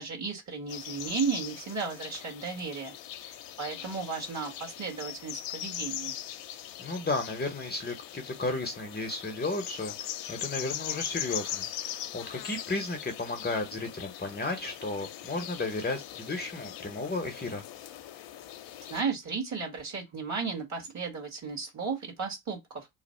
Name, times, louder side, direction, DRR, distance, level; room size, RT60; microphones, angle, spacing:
voice 1, 0.0-2.9 3.3-6.1 18.9-22.9, right 5 dB, 35° right, 1.8 m, -34 dB
sound 1, 0.7-19.0, left 12 dB, 60° left, 0.8 m, -40 dB
voice 2, 6.8-17.6, left 2 dB, 20° left, 1.0 m, -34 dB
3.1 x 2.4 x 4.4 m
hypercardioid pair, 70°, 49 cm